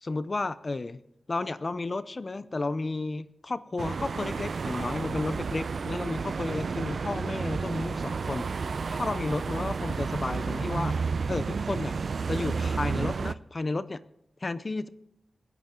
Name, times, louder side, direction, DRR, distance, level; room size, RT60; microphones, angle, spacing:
voice 1, 0.0-1.0 1.3-11.0 11.3-12.0 12.3-14.0 14.4-14.9, left 3 dB, 35° left, 14 dB, 0.6 m, -32 dB
sound 1, 3.8-13.3, right 5 dB, 65° right, 0.4 m, -31 dB
26.5 x 11.0 x 3.7 m, 0.80 s
wide cardioid pair, 140°, 0 cm